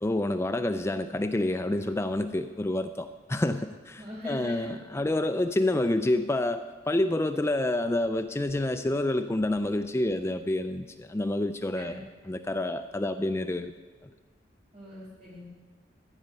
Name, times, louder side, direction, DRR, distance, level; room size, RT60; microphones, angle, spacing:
voice 1, 0.0-13.7, left 1 dB, 15° left, 8 dB, 0.4 m, -28 dB
voice 2, 4.0-4.8 11.8-12.0 14.7-15.4, left 1 dB, 50° right, -8 dB, 3.4 m, -41 dB
15.0 x 5.4 x 9.0 m, 1.4 s
head